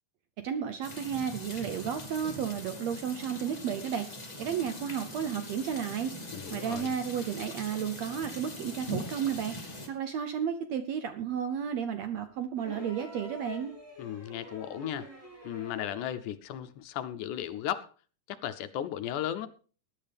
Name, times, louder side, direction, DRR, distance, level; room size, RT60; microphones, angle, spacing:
voice 1, 0.4-4.1 4.4-6.1 6.5-13.7, right 8 dB, 75° right, 9 dB, 1.6 m, -33 dB
sound 1, 0.8-9.9, left 1 dB, 20° left, 1.1 m, -42 dB
voice 2, 6.3-6.9 14.0-15.1 15.4-17.9 18.3-19.5, left 11 dB, 75° left, 12 dB, 2.0 m, -35 dB
sound 2, 12.6-16.1 17.4-17.5, equal, 5° right, 4.3 m, -45 dB
20.0 x 10.5 x 3.5 m, 0.40 s
omnidirectional pair, 3.9 m